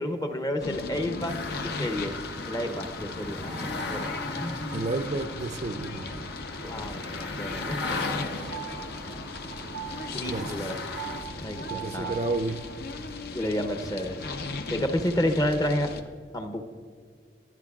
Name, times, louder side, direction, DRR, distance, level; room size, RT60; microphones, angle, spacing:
voice 1, 0.0-2.2 2.4-4.9 6.6-8.0 10.1-10.8 11.4-12.2 13.3-14.2 14.7-15.9 16.3-16.6, left 1 dB, 20° left, 7 dB, 0.7 m, -30 dB
sound 1, 0.6-16.0, left 3 dB, 60° left, 0.7 m, -38 dB
sound 2, 1.3-11.2, left 2 dB, 85° left, 1.4 m, -37 dB
voice 2, 4.7-6.3 10.3-10.7 11.7-12.6, right 2 dB, 40° right, 10 dB, 0.5 m, -31 dB
sound 3, 8.3-13.0, right 10 dB, 90° right, 0.6 m, -42 dB
20.0 x 10.5 x 2.4 m, 2.1 s
head